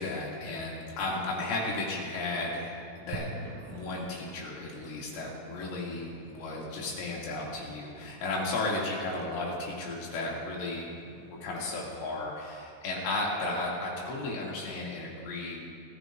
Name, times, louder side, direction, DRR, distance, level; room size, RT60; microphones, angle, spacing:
voice 1, 0.0-3.3 3.7-10.9 11.2-15.6, left 2 dB, 90° left, -4 dB, 5.0 m, -34 dB
sound 1, 3.1-13.4, right 3 dB, 80° right, 3.0 m, -49 dB
23.5 x 15.0 x 2.6 m, 2.4 s
omnidirectional pair, 5.4 m